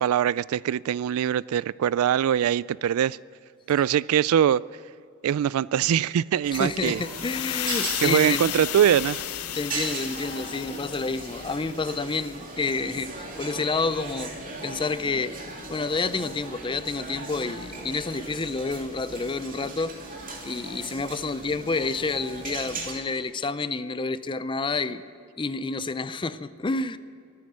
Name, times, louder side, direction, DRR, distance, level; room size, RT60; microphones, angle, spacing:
voice 1, 0.0-3.2 3.7-4.6 5.2-7.0 8.0-9.2, right 9 dB, 70° right, 18 dB, 0.3 m, -22 dB
sound 1, 6.4-22.9, right 2 dB, 40° right, 2.7 m, -38 dB
voice 2, 6.5-8.4 9.5-14.3 14.6-15.3 15.7-19.9 20.4-25.1 25.4-27.0, left 3 dB, 20° left, 14 dB, 0.5 m, -29 dB
sound 2, 6.9-12.0, left 14 dB, 85° left, 0.5 m, -33 dB
23.0 x 9.6 x 6.3 m, 2.5 s
head